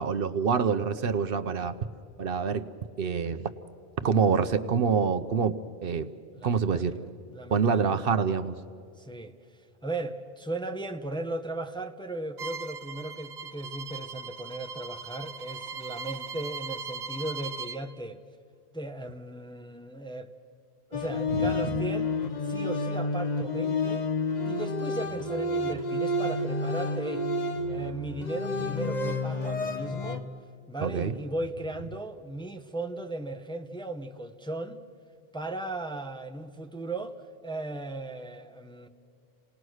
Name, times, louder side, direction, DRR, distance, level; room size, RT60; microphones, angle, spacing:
voice 1, 0.0-1.8 2.2-2.7 3.0-3.5 4.0-5.6 5.8-6.1 6.4-7.0 7.5-8.6 21.3-21.4 30.8-31.1, right 6 dB, 65° right, 10 dB, 0.9 m, -26 dB
voice 2, 6.3-8.1 9.0-9.4 9.8-18.2 18.7-20.3 20.9-24.1 24.4-27.3 27.7-30.3 30.7-34.8 35.3-38.9, right 2 dB, 5° left, 5 dB, 0.8 m, -37 dB
Bowed string instrument, 12.4-17.8, right 5 dB, 85° right, 1.3 m, -39 dB
sound 1, 20.9-30.2, left 2 dB, 45° left, 1.2 m, -30 dB
28.0 x 18.5 x 6.3 m, 2.4 s
omnidirectional pair, 1.1 m